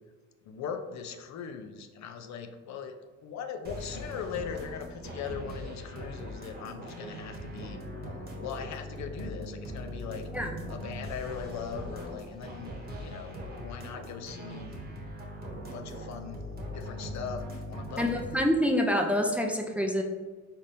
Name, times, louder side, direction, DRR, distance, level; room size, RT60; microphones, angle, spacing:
voice 1, 0.5-2.9 3.2-7.8 8.1-10.3 10.7-12.7 13.0-14.7 15.7-16.4 16.7-18.4, left 7 dB, 65° left, 6 dB, 0.5 m, -40 dB
sound 1, 3.6-18.4, equal, 35° right, 1.1 m, -40 dB
voice 2, 18.0-20.0, equal, 5° right, 2 dB, 0.4 m, -27 dB
4.1 x 3.5 x 2.6 m, 1.3 s
cardioid pair, 90°, 30 cm